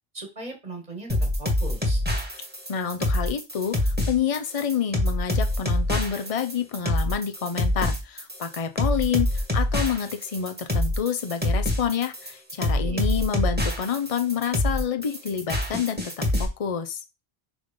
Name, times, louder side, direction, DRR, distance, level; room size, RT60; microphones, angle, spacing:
voice 1, 0.1-2.0 12.7-13.0, right 2 dB, 40° right, 4 dB, 1.9 m, -38 dB
sound 1, 1.1-16.5, left 1 dB, 10° right, 1.7 m, -25 dB
voice 2, 2.7-17.0, left 7 dB, 40° left, 8 dB, 0.7 m, -28 dB
5.6 x 3.6 x 5.2 m, 0.26 s
omnidirectional pair, 1.0 m